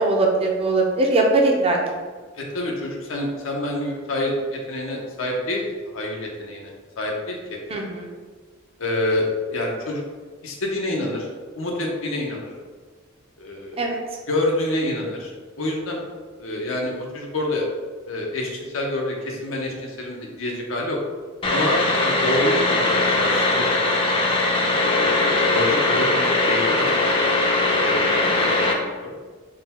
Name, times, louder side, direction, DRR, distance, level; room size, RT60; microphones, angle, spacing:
voice 1, 0.0-1.8 7.7-8.1 13.8-14.0 28.0-28.4, right 2 dB, 30° right, 0 dB, 0.5 m, -21 dB
voice 2, 2.3-5.6 5.9-6.7 7.0-7.6 8.8-10.0 10.4-11.3 11.6-12.5 13.4-13.9 14.3-15.3 15.6-16.0 16.4-17.7 18.1-21.0 21.5-24.2 24.8-25.0 25.5-27.1 27.8-28.0 28.3-29.2, left 1 dB, 85° left, -1 dB, 0.8 m, -27 dB
sound 1, 21.4-28.7, left 2 dB, 25° left, 0.5 m, -20 dB
3.8 x 2.2 x 4.2 m, 1.5 s
head